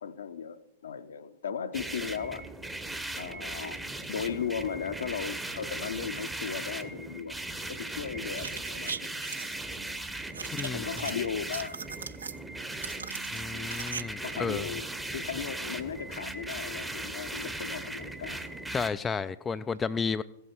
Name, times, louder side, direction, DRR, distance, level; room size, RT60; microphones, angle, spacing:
voice 1, 0.0-2.5 3.2-7.4 7.7-9.2 10.4-11.8 13.5-13.8 14.2-18.5, left 7 dB, 65° left, 0.7 m, -37 dB
sound 1, 1.7-18.9, right 2 dB, 5° right, 0.8 m, -38 dB
sound 2, 8.3-9.5 10.3-11.1 11.4-12.4 12.8-14.0 14.3-14.4, right 6 dB, 70° right, 0.5 m, -38 dB
voice 2, 10.5-10.9 13.3-14.7 18.7-20.2, left 5 dB, 15° left, 0.3 m, -32 dB
16.0 x 8.1 x 4.5 m
figure-of-eight pair, 100°, 0 cm